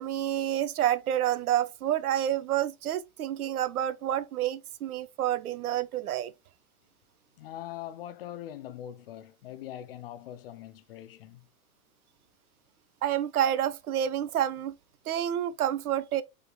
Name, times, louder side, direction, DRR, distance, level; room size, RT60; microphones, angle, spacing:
voice 1, 0.0-6.3 13.0-14.7 15.1-16.2, right 11 dB, 70° right, 0.6 m, -28 dB
voice 2, 7.4-11.5, left 12 dB, 40° left, 0.4 m, -42 dB
5.0 x 3.3 x 2.2 m
figure-of-eight pair, 110°, 46 cm